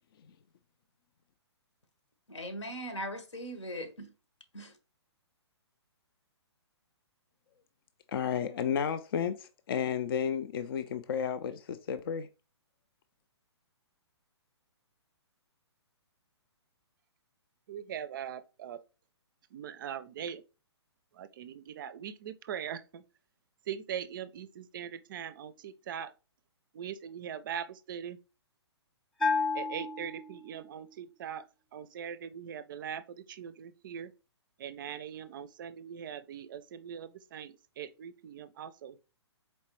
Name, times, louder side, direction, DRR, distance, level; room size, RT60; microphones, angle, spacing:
voice 1, 2.3-4.1 4.5-4.7, equal, 90° left, 1.2 m, -39 dB
voice 2, 8.1-12.3, left 8 dB, 55° left, 0.4 m, -32 dB
voice 3, 17.7-18.8 19.5-20.4 21.1-23.0 23.7-26.1 26.7-28.2 29.5-31.5 31.7-34.1 34.6-39.0, right 8 dB, 45° right, 0.4 m, -41 dB
Bell, 29.2-30.8, left 4 dB, 5° left, 0.5 m, -32 dB
4.3 x 3.2 x 3.0 m
figure-of-eight pair, 130°, 15 cm